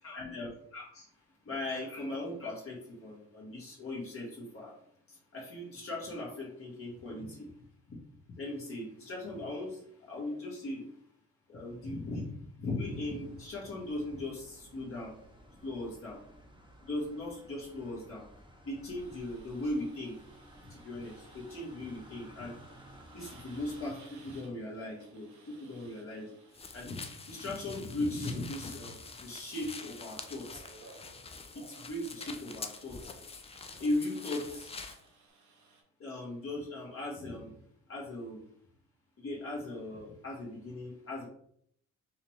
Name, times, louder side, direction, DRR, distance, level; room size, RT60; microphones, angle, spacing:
voice 1, 0.0-4.8 5.1-7.5 7.9-8.0 8.4-11.0 11.5-15.2 15.6-16.2 16.8-18.3 18.6-20.2 20.7-22.5 23.1-26.4 26.7-30.6 31.5-33.2 33.8-34.8 36.0-37.6 37.9-38.4 39.2-41.3, left 2 dB, 45° left, -4 dB, 1.3 m, -38 dB
sound 1, 12.8-23.9, equal, 15° right, 0.9 m, -56 dB
sound 2, 19.0-35.8, right 3 dB, 70° right, 1.1 m, -60 dB
sound 3, 26.5-35.0, left 4 dB, 20° left, 0.4 m, -46 dB
4.6 x 2.2 x 3.1 m, 0.66 s
cardioid pair, 90°, 30 cm